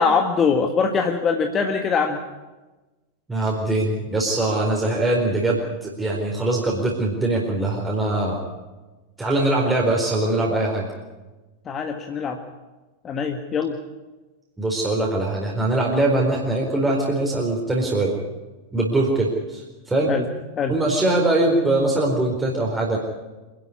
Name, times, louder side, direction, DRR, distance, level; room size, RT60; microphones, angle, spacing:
voice 1, 0.0-2.2 11.6-12.4 13.0-13.8 20.1-20.2 20.6-20.7, left 5 dB, 25° left, 4 dB, 1.7 m, -22 dB
voice 2, 3.3-8.4 9.2-10.9 14.6-18.1 18.7-20.1 20.7-23.0, right 2 dB, 10° right, -2 dB, 4.3 m, -22 dB
25.5 x 12.0 x 9.7 m, 1.2 s
figure-of-eight pair, 90°, 0 cm